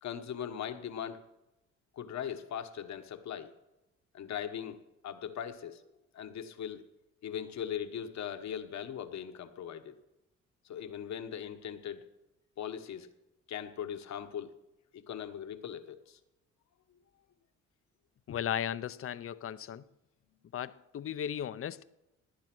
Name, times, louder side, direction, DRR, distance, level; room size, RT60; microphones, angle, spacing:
voice 1, 0.0-1.2 2.0-3.5 4.1-4.8 5.0-5.8 6.1-6.8 7.2-9.9 10.7-12.0 12.6-13.1 13.5-14.5 14.9-16.2, left 9 dB, 65° left, 1.2 m, -39 dB
voice 2, 18.3-19.8 20.5-21.8, left 9 dB, 45° left, 0.6 m, -36 dB
18.0 x 9.7 x 6.1 m
cardioid pair, 90°, 30 cm